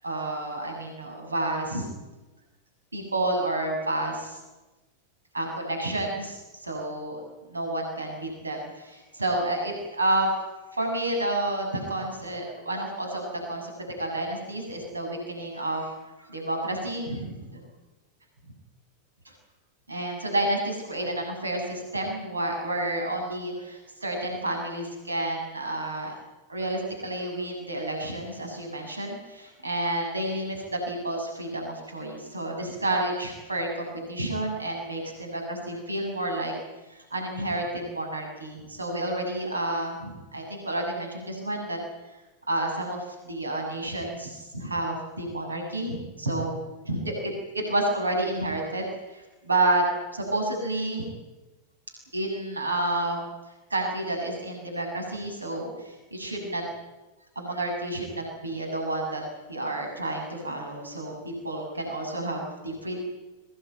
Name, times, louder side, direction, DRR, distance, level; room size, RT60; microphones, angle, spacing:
voice 1, 0.0-1.9 2.9-4.4 5.3-7.2 7.5-10.3 10.7-13.7 14.0-15.9 16.2-17.6 19.9-26.1 26.5-36.5 36.9-41.8 42.1-42.2 42.5-46.6 46.8-49.8 50.1-51.0 52.1-53.2 53.7-56.6 57.3-59.2 59.5-63.0, right 1 dB, 80° right, 2 dB, 6.7 m, -30 dB
24.0 x 18.5 x 9.2 m, 1.1 s
figure-of-eight pair, 90°, 0 cm